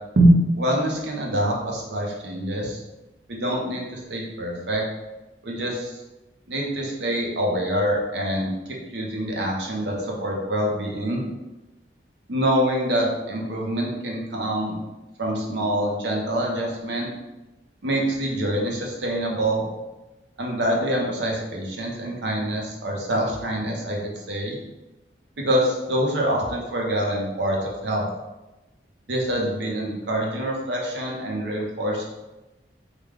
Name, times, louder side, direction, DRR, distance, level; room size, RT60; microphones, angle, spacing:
voice 1, 0.2-2.8 3.3-4.8 5.4-6.0 6.5-11.2 12.3-14.8 15.2-17.1 17.8-19.7 20.4-24.6 25.4-28.1 29.1-32.0, right 1 dB, 70° right, -1 dB, 0.7 m, -25 dB
3.3 x 2.2 x 3.6 m, 1.0 s
head